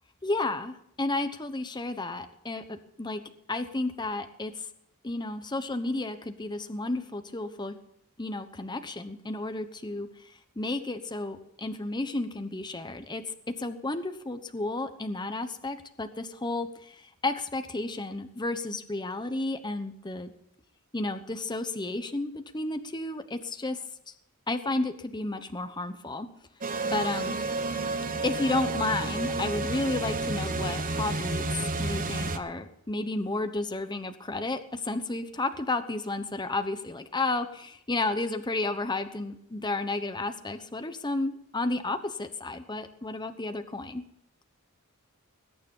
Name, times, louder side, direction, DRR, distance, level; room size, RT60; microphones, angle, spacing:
voice 1, 0.2-3.2 3.5-4.7 5.0-7.8 8.2-20.3 20.9-23.8 24.5-26.3 26.9-27.4 28.2-31.5 31.8-44.0, left 2 dB, 20° left, 8 dB, 1.0 m, -32 dB
sound 1, 26.6-32.4, right 2 dB, 40° right, 1.1 m, -30 dB
20.5 x 9.6 x 5.5 m, 0.74 s
head